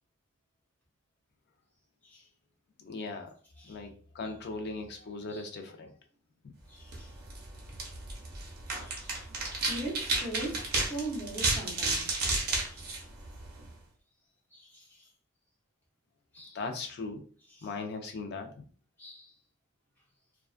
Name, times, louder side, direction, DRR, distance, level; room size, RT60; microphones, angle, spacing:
voice 1, 2.8-3.3 3.6-5.9 6.4-6.5 16.5-17.2 17.6-18.5, left 3 dB, 50° left, 0.5 m, -38 dB
voice 2, 6.7-7.1 8.7-9.2 9.7-12.8 14.5-15.1 16.3-16.6 17.5-17.7 19.0-19.3, right 2 dB, 10° left, 0.7 m, -41 dB
sound 1, 6.8-13.8, right 3 dB, 50° right, 0.6 m, -33 dB
2.3 x 2.3 x 2.4 m
head